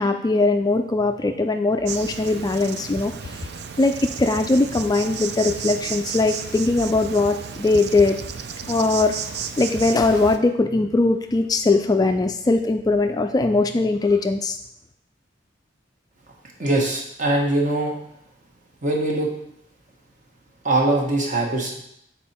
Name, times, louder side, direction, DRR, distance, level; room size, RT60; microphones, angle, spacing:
voice 1, 0.0-3.5 3.8-8.2 8.7-9.2 9.6-14.6, left 3 dB, 20° left, 6 dB, 0.3 m, -20 dB
Insect, 1.9-10.4, right 6 dB, 60° right, 0.5 m, -33 dB
voice 2, 16.6-17.9 18.8-19.3 20.6-21.8, right 2 dB, 45° right, -2 dB, 1.4 m, -22 dB
7.2 x 4.3 x 4.3 m, 0.75 s
head